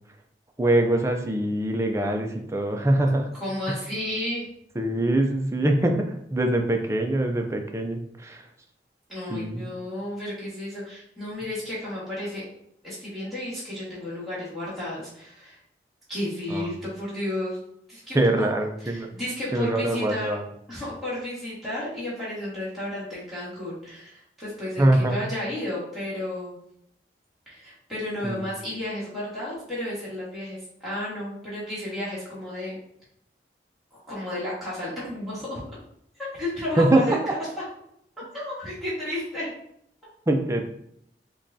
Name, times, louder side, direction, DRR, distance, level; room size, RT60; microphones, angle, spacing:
voice 1, 0.6-3.3 4.8-8.4 9.3-9.6 16.5-16.7 18.1-19.1 19.5-20.4 24.8-25.2 28.2-28.4 36.8-37.3 40.3-40.6, right 1 dB, 15° right, 4 dB, 0.4 m, -23 dB
voice 2, 3.3-4.5 9.1-12.5 12.8-15.6 16.1-17.6 17.9-18.5 18.8-20.3 20.7-26.6 27.5-32.8 33.9-35.6 36.3-37.6 38.3-39.5, left 1 dB, ahead, -10 dB, 1.5 m, -32 dB
4.9 x 2.3 x 2.7 m, 0.72 s
head